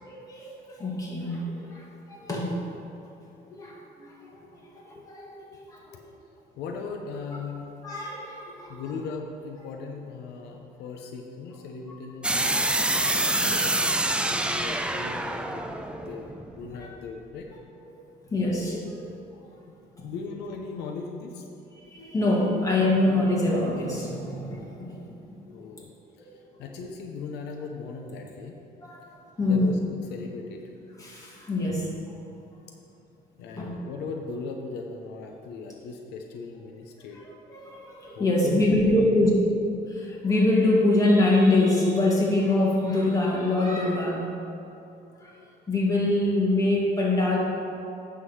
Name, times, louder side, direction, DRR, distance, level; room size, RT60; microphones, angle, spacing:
voice 1, 0.0-2.5 3.5-4.5 4.8-6.0 7.8-8.8 14.2-14.3 16.8-16.9 18.0-19.0 21.9-25.7 28.8-29.0 29.4-29.7 31.0-31.9 33.5-33.7 37.1-37.2 37.5-39.3 39.9-44.2 45.2-45.3 45.7-47.4, left 2 dB, 20° left, -4 dB, 1.9 m, -25 dB
voice 2, 6.5-7.7 8.7-12.5 13.0-16.3 16.5-17.5 19.7-19.8 20.0-21.5 25.4-25.9 26.2-28.6 29.5-29.8 30.1-30.6 33.4-37.2 38.2-39.3, left 4 dB, 80° left, 2 dB, 0.8 m, -38 dB
sound 1, 12.2-17.1, right 1 dB, 5° right, 0.4 m, -26 dB
9.8 x 3.8 x 6.2 m, 2.8 s
cardioid pair, 110°, 17 cm